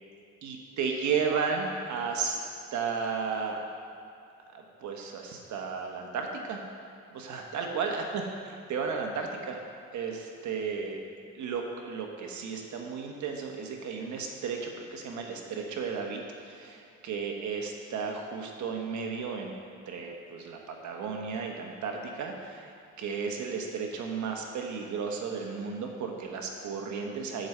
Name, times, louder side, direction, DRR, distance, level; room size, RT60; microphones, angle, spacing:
voice 1, 0.4-2.4 2.7-3.6 4.5-6.6 7.1-9.6 9.9-11.0 11.3-19.5 19.9-22.7 23.0-27.5, right 5 dB, 70° right, 2 dB, 1.2 m, -34 dB
7.8 x 5.1 x 6.6 m, 2.6 s
cardioid pair, 90°, 30 cm